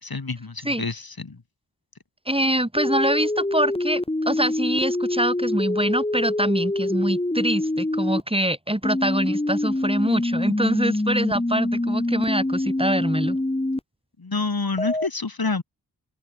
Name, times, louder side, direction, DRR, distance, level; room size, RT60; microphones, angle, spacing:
voice 1, 0.0-1.4 14.2-15.6, left 3 dB, 55° left, 3.5 m, -28 dB
voice 2, 2.3-13.4, right 1 dB, 15° right, 4.4 m, -24 dB
sound 1, 2.8-8.2 8.8-13.8 14.8-15.1, left 1 dB, 15° left, 1.2 m, -25 dB
wide cardioid pair, 65°, 42 cm